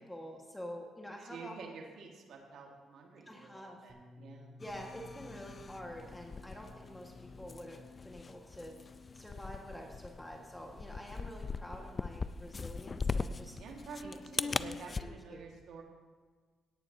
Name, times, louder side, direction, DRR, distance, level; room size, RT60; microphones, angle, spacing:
voice 1, 0.1-1.6 3.3-3.8 4.6-8.8 9.1-13.6 14.0-14.2 15.0-15.4, equal, 10° left, 1 dB, 1.5 m, -47 dB
voice 2, 1.2-4.6 10.6-10.8 13.6-15.8, right 5 dB, 75° right, 0 dB, 1.7 m, -49 dB
Bass guitar, 3.9-10.1, left 2 dB, 40° right, 3.5 m, -59 dB
sound 1, 4.6-15.0, left 4 dB, 35° left, 0.3 m, -41 dB
17.5 x 10.0 x 2.7 m, 1.5 s
cardioid pair, 90°, 0 cm